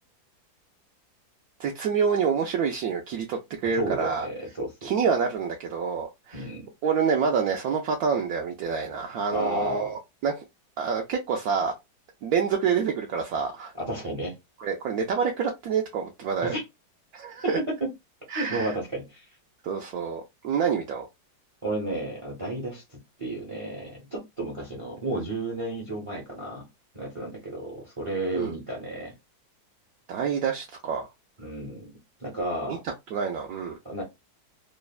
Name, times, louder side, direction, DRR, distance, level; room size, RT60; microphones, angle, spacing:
voice 1, 1.6-4.3 4.8-6.5 6.8-10.4 10.8-11.7 12.2-13.7 14.6-16.5 17.1-17.6 18.3-18.7 19.6-21.1 28.4-28.5 30.1-31.1 32.7-32.8 33.1-33.8, right 6 dB, 75° right, 0.8 m, -27 dB
voice 2, 3.7-4.9 6.3-6.7 9.3-9.9 13.8-14.3 16.4-16.6 17.6-17.9 18.3-19.2 21.6-26.7 26.9-29.1 31.4-31.9 32.2-32.8 33.8-34.0, right 1 dB, 40° right, 0.4 m, -32 dB
3.1 x 2.1 x 2.3 m
omnidirectional pair, 2.1 m